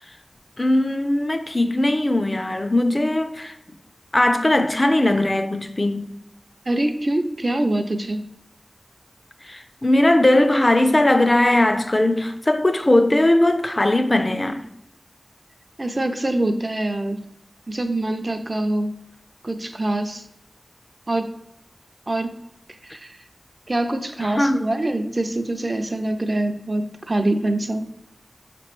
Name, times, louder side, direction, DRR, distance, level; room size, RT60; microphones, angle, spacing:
voice 1, 0.6-3.5 4.1-6.0 9.4-14.6 24.2-24.6, left 1 dB, 35° left, 0.4 m, -19 dB
voice 2, 6.7-8.3 15.8-17.2 17.7-18.9 19.4-20.2 21.1-21.3 22.1-22.3 22.8-23.2 23.7-27.8, right 1 dB, 45° right, 0.4 m, -24 dB
5.0 x 3.0 x 3.0 m
wide cardioid pair, 60°, 0 cm